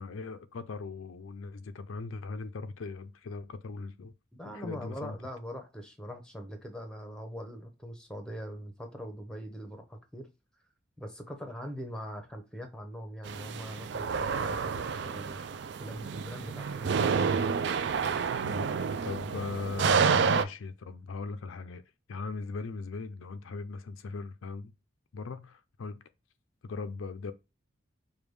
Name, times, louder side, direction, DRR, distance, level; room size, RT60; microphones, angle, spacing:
voice 1, 0.0-4.1 4.4-5.2 18.4-18.7 19.1-21.8 22.1-24.7 25.1-26.0 26.6-27.3, left 4 dB, 80° left, 0.4 m, -39 dB
voice 2, 4.4-10.3 11.0-15.4 15.8-17.1, equal, 5° left, 0.8 m, -42 dB
sound 1, 13.2-20.4, right 6 dB, 55° right, 0.3 m, -29 dB
5.1 x 2.3 x 3.2 m
head